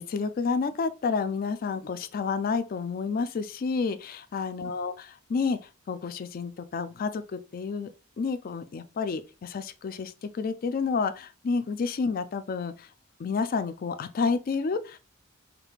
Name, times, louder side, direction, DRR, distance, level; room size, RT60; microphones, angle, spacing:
voice 1, 0.0-4.9 5.3-5.6 5.9-7.9 8.2-12.9 13.2-15.0, left 5 dB, 45° left, 0.3 m, -30 dB
5.0 x 2.4 x 3.2 m
head